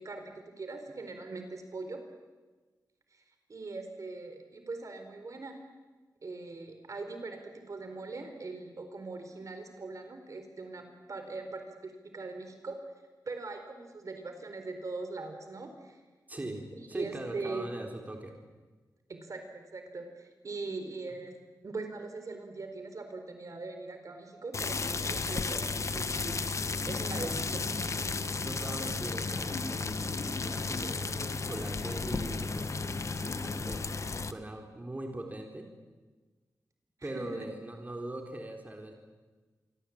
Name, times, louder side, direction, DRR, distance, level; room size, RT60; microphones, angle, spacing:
voice 1, 0.0-2.0 3.1-3.2 3.5-5.6 6.2-12.8 13.3-16.0 16.7-17.7 19.1-21.4 21.6-26.4 26.9-27.6 37.0-37.3, right 3 dB, 50° right, 6 dB, 4.4 m, -41 dB
voice 2, 16.3-18.3 21.1-21.2 28.2-32.6 33.2-33.9 34.2-35.7 37.0-38.9, right 1 dB, 20° right, 2 dB, 4.0 m, -41 dB
sound 1, 24.5-34.3, left 4 dB, 45° left, 1.3 m, -33 dB
27.5 x 24.5 x 8.8 m, 1.3 s
wide cardioid pair, 125°, 7 cm